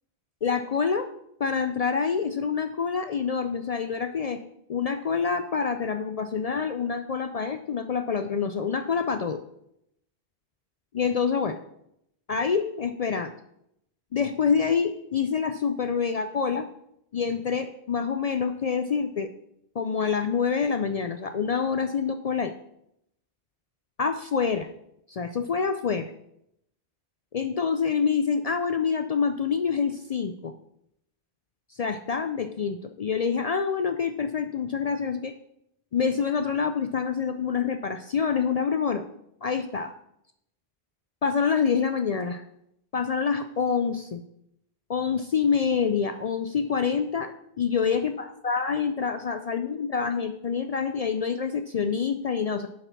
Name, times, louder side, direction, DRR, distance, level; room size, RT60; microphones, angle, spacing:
voice 1, 0.4-1.1 1.4-4.4 4.7-9.4 10.9-11.6 12.3-13.3 14.1-16.7 17.1-19.3 19.8-22.5 24.0-24.7 25.1-26.1 27.3-30.5 31.7-35.3 35.9-39.0 39.4-39.9 41.2-42.4 42.9-44.2 44.9-52.7, left 6 dB, 55° left, 8 dB, 0.4 m, -26 dB
7.8 x 5.7 x 6.0 m, 0.78 s
omnidirectional pair, 1.0 m